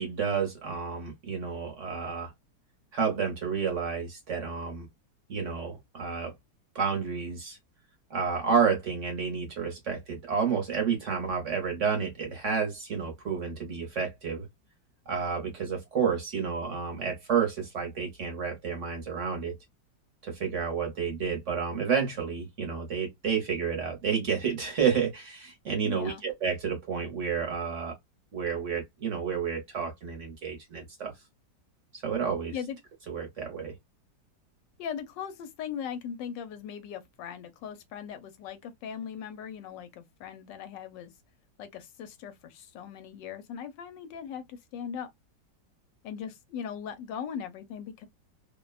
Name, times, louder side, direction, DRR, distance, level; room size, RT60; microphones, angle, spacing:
voice 1, 0.0-2.3 2.9-4.9 5.3-6.3 6.7-7.6 8.1-14.5 15.1-19.6 20.2-28.0 28.3-31.1 31.9-32.5 33.1-33.8, right 6 dB, 50° right, 1.0 m, -30 dB
voice 2, 25.8-26.2 32.5-32.8 34.8-41.1 41.6-45.1 46.0-48.1, left 8 dB, 85° left, 1.3 m, -39 dB
3.0 x 2.1 x 2.3 m
omnidirectional pair, 1.9 m